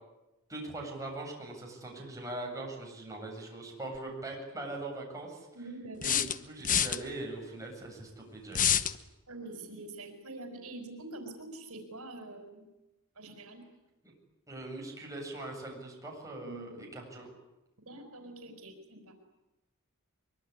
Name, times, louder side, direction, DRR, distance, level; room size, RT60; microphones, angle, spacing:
voice 1, 0.5-5.5 6.0-8.8 14.0-14.1 14.5-17.3, right 2 dB, 15° right, -1 dB, 8.0 m, -41 dB
sound 1, 3.9-4.0 6.0-7.0 8.5-9.0, left 9 dB, 40° left, 1.1 m, -27 dB
voice 2, 5.5-6.3 9.3-12.7 13.1-13.6 16.4-16.9 17.8-19.2, right 2 dB, 80° right, 6 dB, 4.9 m, -45 dB
24.5 x 23.5 x 9.9 m, 0.97 s
head